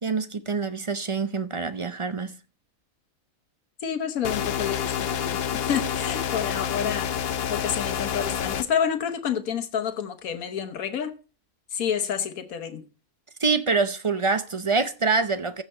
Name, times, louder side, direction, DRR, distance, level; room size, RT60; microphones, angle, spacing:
voice 1, 0.0-2.3 13.4-15.6, right 4 dB, 35° right, 0.5 m, -25 dB
voice 2, 3.8-7.1 7.5-11.1 11.7-12.8, left 8 dB, 85° left, 1.5 m, -29 dB
sound 1, 4.2-8.6, left 8 dB, 55° left, 0.8 m, -28 dB
15.0 x 5.6 x 4.3 m
omnidirectional pair, 1.4 m